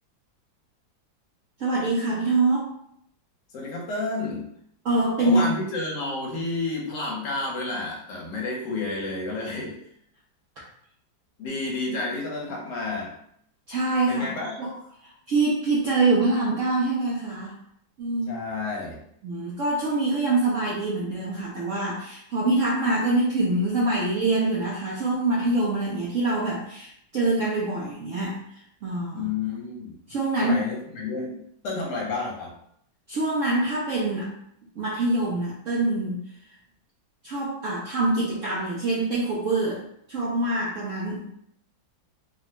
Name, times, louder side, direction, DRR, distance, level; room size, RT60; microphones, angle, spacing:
voice 1, 1.6-2.7 4.8-5.5 13.7-14.3 14.6-14.7 15.3-17.5 18.0-18.4 19.2-28.4 28.8-29.3 30.1-30.7 33.1-34.3 34.8-36.2 37.2-39.8 40.1-41.3, right 2 dB, 70° right, -6 dB, 0.7 m, -25 dB
voice 2, 3.5-4.5 5.2-9.8 11.4-13.1 14.1-14.6 18.3-19.0 29.1-29.9 30.4-32.5, left 3 dB, 65° left, -2 dB, 1.4 m, -30 dB
3.4 x 2.1 x 2.9 m, 0.70 s
omnidirectional pair, 2.1 m